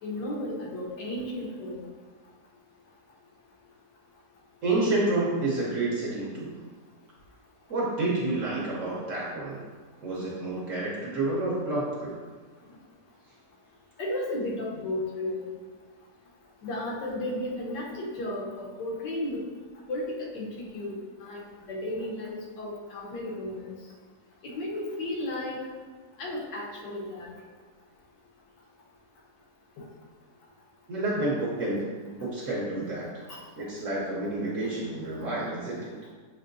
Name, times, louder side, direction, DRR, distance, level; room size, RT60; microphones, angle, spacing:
voice 1, 0.0-1.8 14.0-15.5 16.6-19.4 19.9-23.7 24.4-25.6 26.2-27.3 29.8-29.9 33.3-33.4, left 1 dB, 85° left, -3 dB, 1.5 m, -34 dB
voice 2, 4.6-6.5 7.7-9.6 10.0-12.1 30.9-31.8 32.1-33.2 33.6-35.9, right 2 dB, 55° right, -5 dB, 1.1 m, -29 dB
6.4 x 2.7 x 2.5 m, 1.5 s
omnidirectional pair, 1.8 m